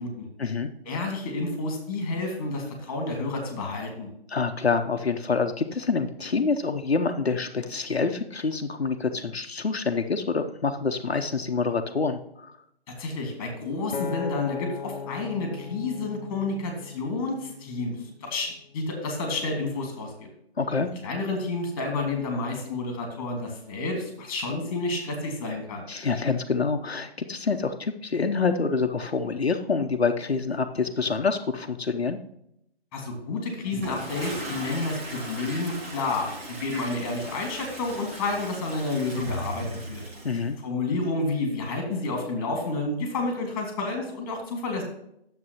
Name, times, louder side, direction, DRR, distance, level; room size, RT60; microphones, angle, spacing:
voice 1, 0.8-4.1 13.0-20.3 21.0-25.9 32.9-40.0 40.6-44.8, left 3 dB, 20° left, 3 dB, 2.2 m, -30 dB
voice 2, 4.3-12.5 20.6-20.9 25.9-32.2 40.2-40.6, left 4 dB, 85° left, 5 dB, 0.8 m, -26 dB
Acoustic guitar, 13.9-18.3 18.9-19.1, left 6 dB, 50° left, 0.6 m, -38 dB
Toilet flush, 33.7-40.5, right 1 dB, 15° right, 0.9 m, -37 dB
9.6 x 7.4 x 2.9 m, 0.76 s
figure-of-eight pair, 150°, 31 cm